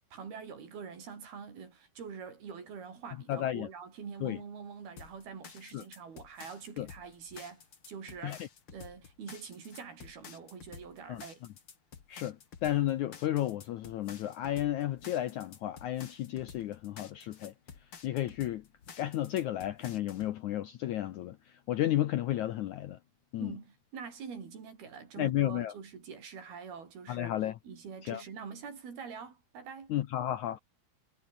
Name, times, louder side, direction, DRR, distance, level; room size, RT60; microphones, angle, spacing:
voice 1, 0.1-8.4 8.7-11.4 23.4-27.3 27.6-29.9, right 6 dB, 75° right, 6.5 m, -45 dB
voice 2, 3.3-3.7 4.2-4.4 5.7-5.8 6.8-6.9 8.2-8.4 11.1-11.2 12.1-12.4 12.6-17.5 18.0-18.6 19.0-21.4 21.7-23.0 23.3-23.5 25.2-25.7 27.1-27.6 28.0-28.2 29.9-30.6, left 13 dB, 70° left, 1.8 m, -32 dB
sound 1, 5.0-20.3, left 6 dB, 40° left, 2.8 m, -51 dB
omnidirectional pair, 4.5 m